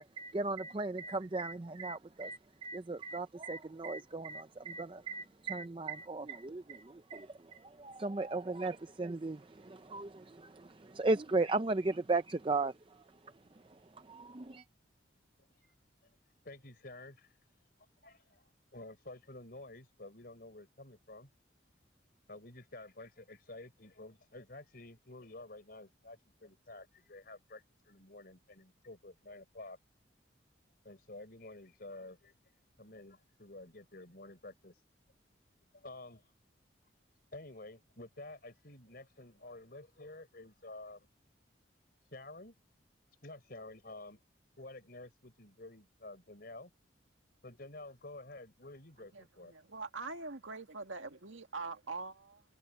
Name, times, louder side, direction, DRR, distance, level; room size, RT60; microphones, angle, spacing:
voice 1, 0.0-14.6, right 3 dB, 25° right, 0.5 m, -36 dB
voice 2, 16.4-17.4 17.8-21.3 22.3-29.8 30.8-32.3 32.8-34.8 35.7-36.3 37.3-41.1 42.1-42.5 43.2-44.2 44.6-46.7 47.4-49.5, left 2 dB, 50° left, 4.2 m, -51 dB
voice 3, 49.1-52.4, right 3 dB, 85° right, 2.0 m, -43 dB
head